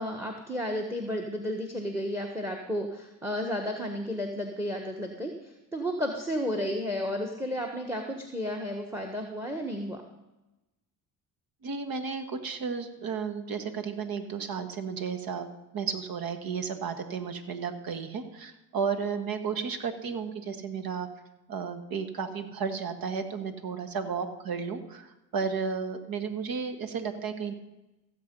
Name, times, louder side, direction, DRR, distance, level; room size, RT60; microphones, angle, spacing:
voice 1, 0.0-10.0, equal, 5° right, 4 dB, 1.4 m, -32 dB
voice 2, 11.6-21.1 21.5-27.5, right 6 dB, 60° right, 8 dB, 1.7 m, -33 dB
15.5 x 7.7 x 5.5 m, 1.0 s
supercardioid pair, 80°, 40 cm